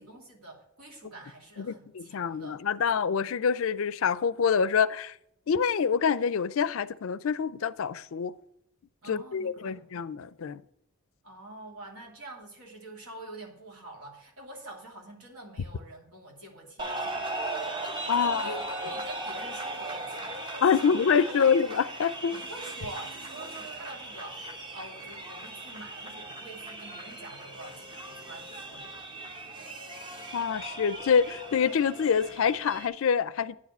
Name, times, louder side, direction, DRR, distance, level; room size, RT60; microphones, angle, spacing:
voice 1, 0.0-2.8 9.0-9.9 11.2-17.4 18.2-21.0 21.4-21.5 22.3-29.1, right 2 dB, 75° right, 3.0 m, -46 dB
voice 2, 1.6-5.1 5.5-8.3 9.1-10.6 18.1-18.4 20.6-22.4 30.3-33.6, left 6 dB, 65° left, 0.4 m, -26 dB
sound 1, 16.8-32.9, right 2 dB, 20° right, 0.9 m, -38 dB
9.7 x 4.8 x 7.9 m
head